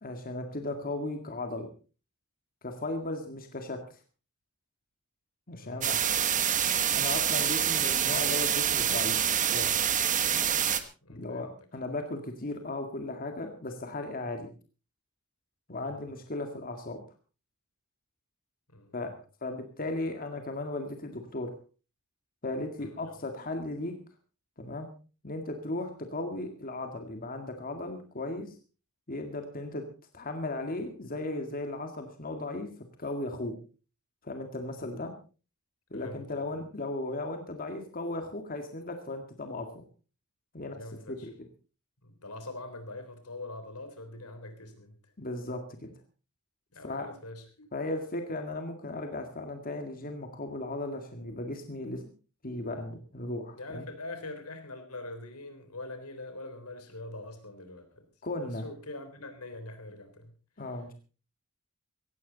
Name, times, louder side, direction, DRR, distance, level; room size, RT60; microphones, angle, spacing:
voice 1, 0.0-1.7 2.6-3.8 5.5-6.0 6.9-9.2 9.5-9.7 11.1-14.5 15.7-17.0 18.9-19.1 19.4-21.5 22.4-23.9 24.6-24.9 25.2-28.5 29.1-29.8 30.1-32.7 33.0-33.6 34.2-35.1 35.9-39.8 40.5-40.8 41.1-41.3 45.2-45.9 46.8-47.1 47.7-52.0 52.4-53.9 58.2-58.6 60.6-60.9, left 2 dB, 40° left, 5 dB, 2.0 m, -36 dB
voice 2, 5.6-6.3 11.0-11.5 15.9-16.1 18.7-19.2 22.8-23.0 34.8-34.9 35.9-36.2 36.5-36.6 40.6-41.3 42.0-45.0 46.7-47.7 53.6-58.0 58.4-60.3, left 2 dB, 80° left, 8 dB, 3.6 m, -43 dB
sound 1, 5.8-10.8, right 9 dB, 35° right, 1.3 m, -26 dB
17.5 x 15.0 x 4.0 m, 0.35 s
head